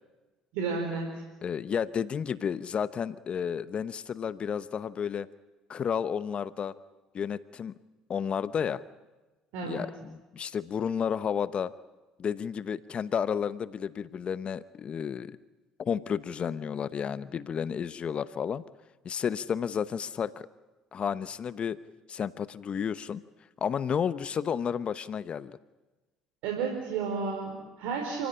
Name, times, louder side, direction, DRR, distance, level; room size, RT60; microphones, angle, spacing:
voice 1, 0.5-1.2 9.5-9.8 26.4-28.3, right 5 dB, 70° right, 1 dB, 4.8 m, -32 dB
voice 2, 1.4-5.3 5.7-6.7 7.1-7.7 8.1-8.8 9.7-11.7 12.2-15.4 15.8-18.6 19.0-20.5 20.9-21.8 22.1-23.2 23.6-25.6, left 7 dB, 45° left, 15 dB, 0.9 m, -31 dB
29.0 x 15.5 x 9.9 m, 1.2 s
hypercardioid pair, 65°, 3 cm